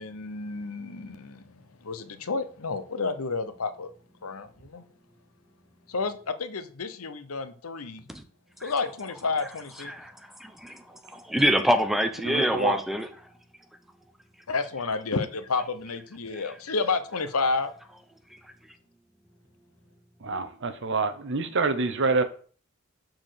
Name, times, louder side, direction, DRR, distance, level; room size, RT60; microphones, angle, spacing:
voice 1, 0.0-3.9 4.2-4.8 5.9-8.1 8.6-9.9 14.5-17.7, left 4 dB, 80° left, 0.9 m, -30 dB
voice 2, 10.4-10.8 11.1-13.1, equal, ahead, 0.7 m, -25 dB
voice 3, 12.2-12.8 20.2-22.2, right 3 dB, 60° right, 0.9 m, -27 dB
6.1 x 4.4 x 6.5 m
head